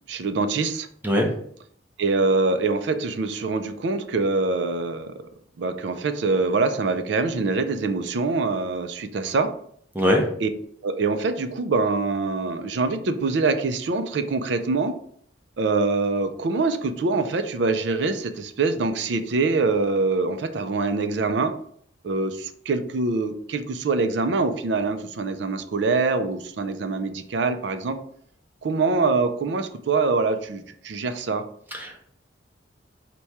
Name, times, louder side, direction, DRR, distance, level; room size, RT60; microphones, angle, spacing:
voice 1, 0.1-0.9 2.0-5.2 5.6-9.5 10.4-10.5 10.8-14.9 15.6-21.5 22.0-28.0 28.6-31.4, right 3 dB, 65° right, 9 dB, 0.4 m, -24 dB
voice 2, 9.9-10.2 31.7-32.0, equal, 10° right, 0 dB, 0.6 m, -21 dB
4.1 x 2.2 x 4.6 m, 0.64 s
head